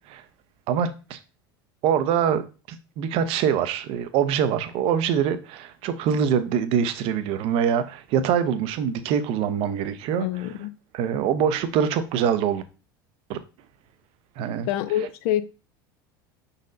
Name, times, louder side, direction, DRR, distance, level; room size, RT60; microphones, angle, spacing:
voice 1, 0.7-1.2 1.8-10.3 10.9-12.6 13.3-13.4 14.4-14.7, right 8 dB, 55° right, 0.6 m, -24 dB
voice 2, 10.2-10.7 14.7-15.4, left 12 dB, 60° left, 0.5 m, -26 dB
5.2 x 4.0 x 2.6 m
hypercardioid pair, 85°, 12 cm